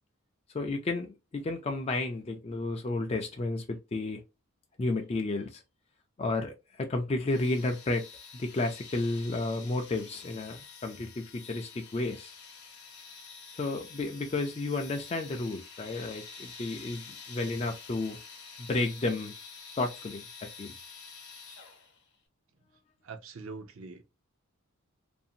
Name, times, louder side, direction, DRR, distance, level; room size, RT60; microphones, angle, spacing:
voice 1, 0.5-4.2 4.8-5.6 6.2-8.1 8.3-12.3 13.6-18.2 18.6-19.3 19.8-20.7, left 2 dB, 25° left, 0.3 m, -32 dB
sound 1, 7.3-22.0, left 5 dB, 50° left, 0.8 m, -48 dB
voice 2, 23.0-24.0, right 4 dB, 60° right, 0.5 m, -43 dB
2.6 x 2.4 x 2.7 m
head